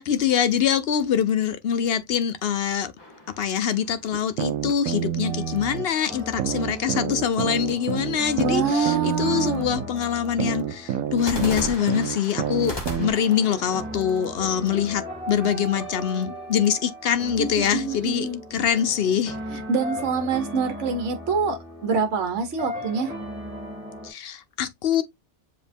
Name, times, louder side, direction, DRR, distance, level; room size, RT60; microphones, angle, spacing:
voice 1, 0.0-2.9 3.4-19.4 24.0-25.0, left 8 dB, 60° left, 0.7 m, -24 dB
sound 1, 3.0-4.4 11.2-15.1, left 1 dB, 20° left, 1.0 m, -37 dB
sound 2, 4.1-5.9 6.4-9.9 10.4-13.1, right 10 dB, 80° right, 1.0 m, -28 dB
sound 3, 5.2-24.1, equal, 5° right, 3.1 m, -37 dB
voice 2, 8.4-9.7 17.4-18.4 19.5-23.1, right 5 dB, 60° right, 1.3 m, -26 dB
7.0 x 2.9 x 2.6 m
omnidirectional pair, 1.4 m